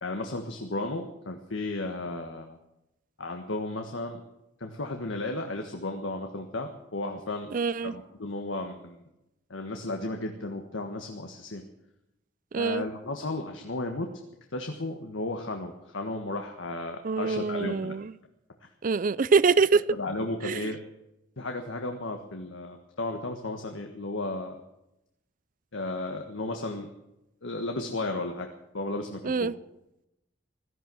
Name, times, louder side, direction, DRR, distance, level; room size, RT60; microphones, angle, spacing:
voice 1, 0.0-2.6 3.2-4.2 4.6-7.5 7.8-9.0 9.5-11.6 12.5-14.1 14.5-17.9 18.6-18.7 19.9-20.8 21.4-24.6 25.7-26.9 27.4-28.5 28.7-29.5, left 2 dB, 85° left, 4 dB, 1.5 m, -34 dB
voice 2, 7.5-7.9 12.5-12.8 17.0-18.1 18.8-19.8 20.4-20.7 29.2-29.5, right 4 dB, 45° right, 18 dB, 0.5 m, -24 dB
16.5 x 13.5 x 6.3 m, 0.87 s
head